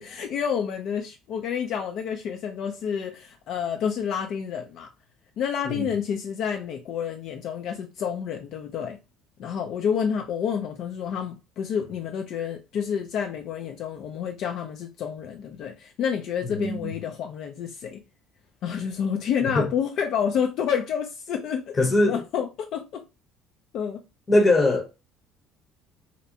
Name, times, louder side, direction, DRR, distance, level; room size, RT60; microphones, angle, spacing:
voice 1, 0.0-4.9 5.4-9.0 9.4-18.0 18.6-21.7 22.1-23.0 23.7-24.0, left 7 dB, 60° left, 0.3 m, -29 dB
voice 2, 16.4-16.9 19.4-19.7 21.7-22.2 24.3-24.9, left 2 dB, 25° left, 0.7 m, -21 dB
2.6 x 2.1 x 2.6 m
cardioid pair, 115°, 0 cm